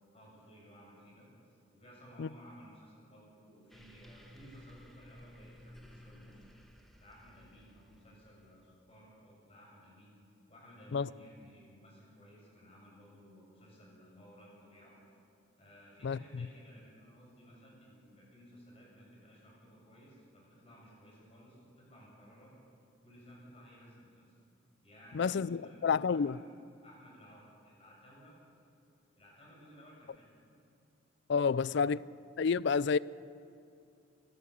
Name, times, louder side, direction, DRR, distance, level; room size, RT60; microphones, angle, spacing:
voice 1, 0.1-1.3 1.7-6.5 7.0-10.1 10.5-14.9 15.6-22.5 23.0-24.2 24.8-26.4 26.8-28.3 29.2-30.3, equal, 30° left, 7.1 m, -57 dB
sound 1, 3.7-8.6, equal, ahead, 1.6 m, -56 dB
voice 2, 16.0-16.5 25.1-26.4 31.3-32.0 32.4-33.0, left 5 dB, 60° left, 0.4 m, -29 dB
25.0 x 12.5 x 8.3 m
head